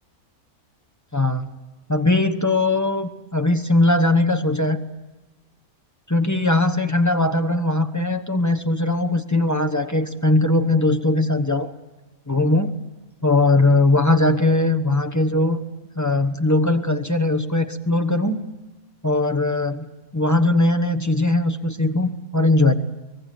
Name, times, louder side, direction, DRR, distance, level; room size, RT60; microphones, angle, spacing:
voice 1, 1.1-1.5 1.9-4.8 6.1-11.7 12.3-12.7 13.2-15.6 16.0-18.4 19.0-19.9 20.1-22.7, left 2 dB, 15° left, 7 dB, 0.9 m, -20 dB
23.5 x 18.5 x 9.5 m, 1.1 s
omnidirectional pair, 1.6 m